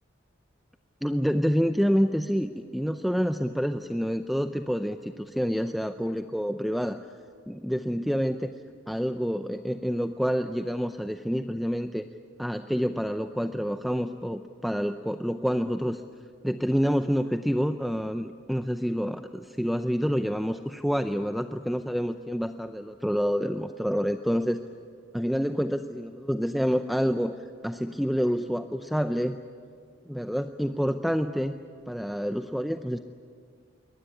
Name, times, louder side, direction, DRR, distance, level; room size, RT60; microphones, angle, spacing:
voice 1, 1.0-7.0 7.5-8.5 8.9-12.0 12.4-16.0 16.4-24.6 25.1-27.3 27.6-29.4 30.1-31.6 31.9-33.0, equal, ahead, 8 dB, 0.6 m, -28 dB
23.0 x 19.5 x 9.9 m, 2.1 s
head